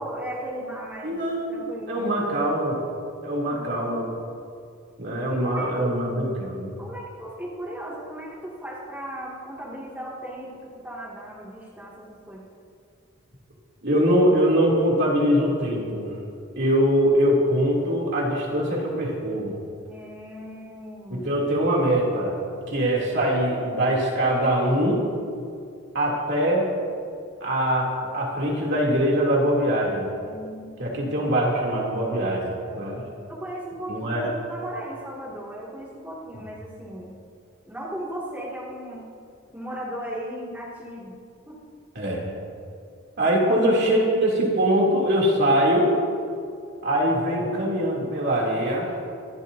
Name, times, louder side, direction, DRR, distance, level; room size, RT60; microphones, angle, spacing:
voice 1, 0.0-1.2 1.5-2.1 3.4-4.0 5.3-5.9 6.8-12.4 19.9-21.5 30.2-30.7 33.3-37.2 37.6-39.1 39.5-41.2 41.5-41.6 43.3-44.0, right 1 dB, 10° right, -7 dB, 2.4 m, -37 dB
voice 2, 1.0-2.8 3.2-4.1 5.0-6.8 13.8-16.1 16.6-19.5 21.1-22.3 22.7-25.0 25.9-26.7 27.4-30.1 30.8-33.0 33.9-34.3 41.9-42.3 43.2-45.9 46.8-48.9, equal, 55° right, -3 dB, 3.1 m, -23 dB
24.5 x 13.5 x 2.8 m, 2.4 s
head